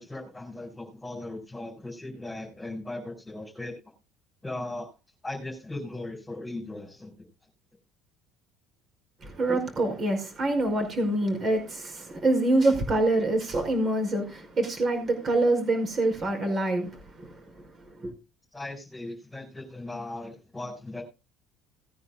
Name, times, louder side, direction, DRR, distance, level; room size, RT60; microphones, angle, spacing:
voice 1, 0.0-3.7 4.4-4.9 5.2-7.2 18.5-21.0, left 2 dB, 10° left, 4.8 m, -38 dB
voice 2, 9.2-17.3 18.0-18.1, right 2 dB, 30° right, 5.1 m, -26 dB
19.0 x 9.7 x 2.2 m
cardioid pair, 145°, 0 cm